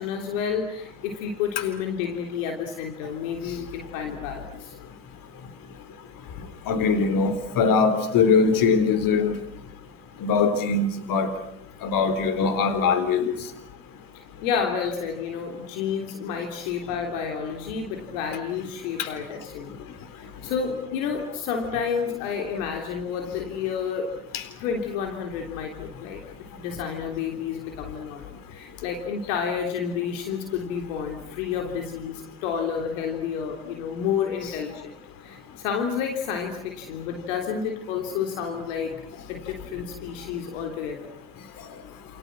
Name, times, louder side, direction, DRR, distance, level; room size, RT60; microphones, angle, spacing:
voice 1, 0.0-4.7 14.4-19.8 20.2-24.1 24.6-34.9 35.2-39.0 39.3-41.1, left 7 dB, 75° left, 3 dB, 3.4 m, -30 dB
voice 2, 6.7-9.4 10.2-11.3 11.8-13.3 19.0-19.1 24.3-24.4, left 5 dB, 55° left, 11 dB, 4.1 m, -21 dB
29.0 x 29.0 x 6.2 m, 0.65 s
hypercardioid pair, 60°, 39 cm